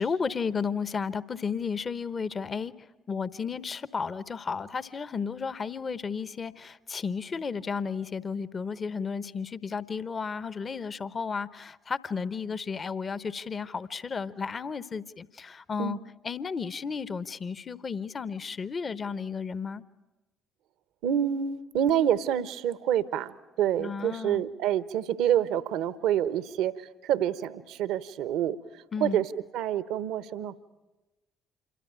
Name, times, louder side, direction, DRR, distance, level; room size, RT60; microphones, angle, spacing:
voice 1, 0.0-2.7 3.1-16.0 16.2-19.8 23.8-24.4 28.9-29.2, left 5 dB, 35° left, 16 dB, 1.0 m, -33 dB
voice 2, 21.0-30.6, right 10 dB, 65° right, 16 dB, 1.0 m, -28 dB
27.0 x 23.5 x 8.9 m, 1.1 s
figure-of-eight pair, 50°, 0 cm